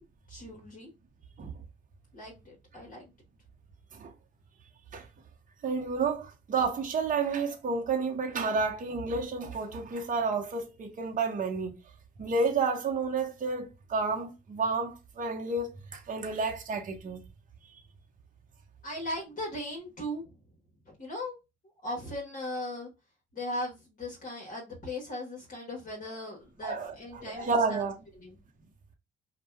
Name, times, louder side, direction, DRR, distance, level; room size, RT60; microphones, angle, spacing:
voice 1, 0.3-0.9 2.1-3.1 18.8-20.4 21.0-21.4 21.8-22.9 23.3-27.8 28.2-28.4, left 1 dB, 45° left, 1.3 m, -38 dB
voice 2, 5.6-11.8 12.2-17.2 26.6-28.0, right 4 dB, 40° right, 0.8 m, -30 dB
2.7 x 2.2 x 3.3 m
cardioid pair, 90°, 20 cm